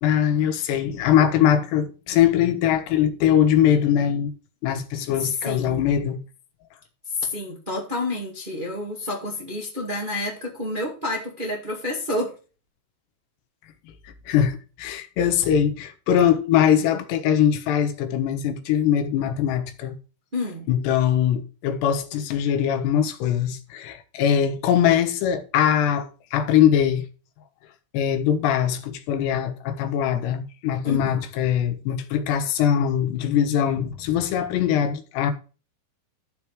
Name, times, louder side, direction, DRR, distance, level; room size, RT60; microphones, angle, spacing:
voice 1, 0.0-4.3 4.6-6.2 14.3-19.9 20.7-27.0 27.9-35.3, left 9 dB, 90° left, 3.4 m, -22 dB
voice 2, 5.4-5.9 7.2-12.3 20.3-20.7 30.8-31.2, left 2 dB, 20° right, 1.3 m, -29 dB
12.5 x 5.1 x 4.7 m
omnidirectional pair, 4.7 m